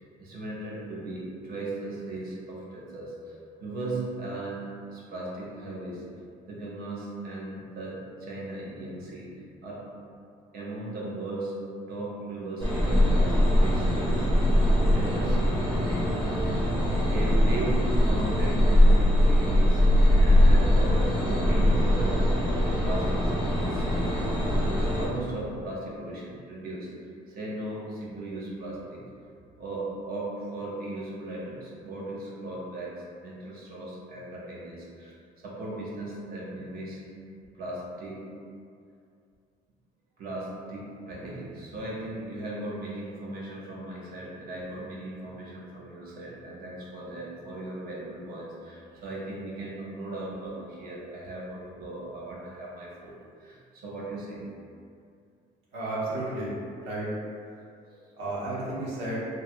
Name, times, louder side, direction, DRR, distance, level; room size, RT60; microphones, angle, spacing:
voice 1, 0.0-6.1 6.5-9.9 10.5-11.6 11.9-19.8 20.2-24.2 24.6-29.1 29.6-35.2 35.4-37.0 37.5-38.3 40.2-54.6 57.5-58.0, right 2 dB, 60° right, -5 dB, 0.7 m, -37 dB
sound 1, 12.6-25.1, left 1 dB, 30° right, 0.8 m, -22 dB
voice 2, 55.7-56.6 56.8-57.1 58.2-59.3, right 2 dB, 90° right, -7 dB, 1.0 m, -32 dB
2.9 x 2.6 x 2.5 m, 2.4 s
cardioid pair, 110°, 17 cm